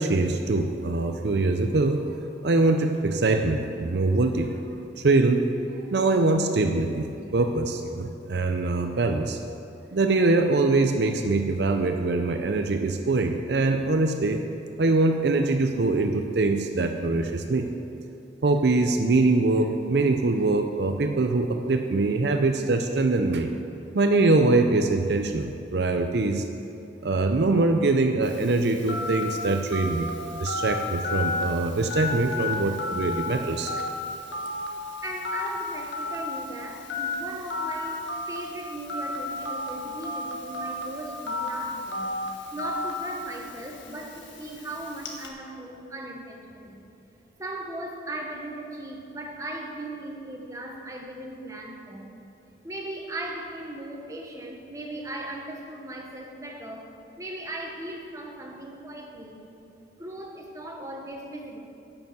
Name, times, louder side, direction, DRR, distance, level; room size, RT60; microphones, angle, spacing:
voice 1, 0.0-2.0 2.4-4.5 5.0-5.5 5.9-7.1 7.3-9.4 9.9-14.4 14.8-17.7 18.4-23.5 23.9-26.4 27.0-30.1 30.4-33.7, right 3 dB, 65° right, 5 dB, 0.5 m, -23 dB
Telephone, 28.2-45.3, left 2 dB, 90° left, 1.5 m, -33 dB
voice 2, 35.0-42.2 42.5-46.8 47.4-52.1 52.6-56.9 57.2-59.5 60.0-61.6, right 1 dB, 15° right, 0 dB, 1.2 m, -38 dB
11.0 x 6.9 x 7.8 m, 2.8 s
head